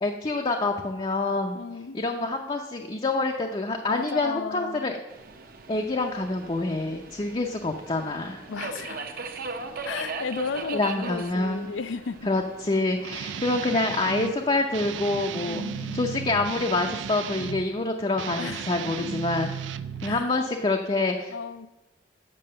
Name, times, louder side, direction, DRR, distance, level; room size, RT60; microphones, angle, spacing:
voice 1, 0.0-1.6 1.9-5.0 5.7-8.4 10.7-11.7 12.3-19.5 20.0-21.3, left 2 dB, 30° left, 2 dB, 0.6 m, -27 dB
voice 2, 1.5-2.0 3.9-5.0 8.5-9.1 9.8-12.3 15.4-16.2 18.4-18.7 20.0-20.3 21.3-21.7, left 5 dB, 75° left, 14 dB, 0.5 m, -34 dB
Subway metro underground, 5.1-16.6, right 4 dB, 50° right, 0.8 m, -40 dB
Guitar, 13.0-14.3 14.7-17.7 18.1-20.3, right 7 dB, 70° right, 0.4 m, -35 dB
7.6 x 5.9 x 7.7 m, 1.0 s
head